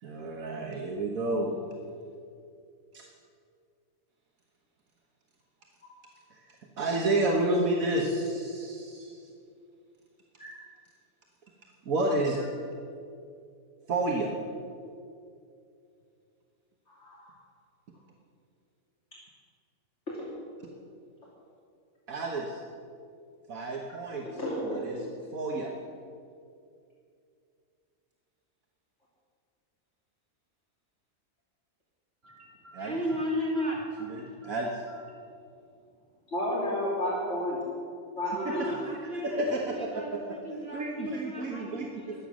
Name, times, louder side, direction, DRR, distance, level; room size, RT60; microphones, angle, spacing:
voice 1, 0.0-1.6 2.9-3.0 6.3-9.3 11.8-12.4 13.9-14.3 22.1-22.6 23.5-24.3 24.6-25.1 25.3-25.7 32.7-32.9 34.1-34.8 38.4-38.5 39.4-40.2 40.7-42.2, right 2 dB, 75° right, 0 dB, 1.7 m, -30 dB
voice 2, 16.9-17.3 20.1-20.3 24.2-24.8 36.3-37.6 38.1-38.8, left 1 dB, 55° left, -7 dB, 3.3 m, -31 dB
voice 3, 32.2-34.6 34.9-35.3 38.5-42.3, equal, 45° right, -3 dB, 2.7 m, -36 dB
22.5 x 8.9 x 6.3 m, 2.4 s
omnidirectional pair, 1.5 m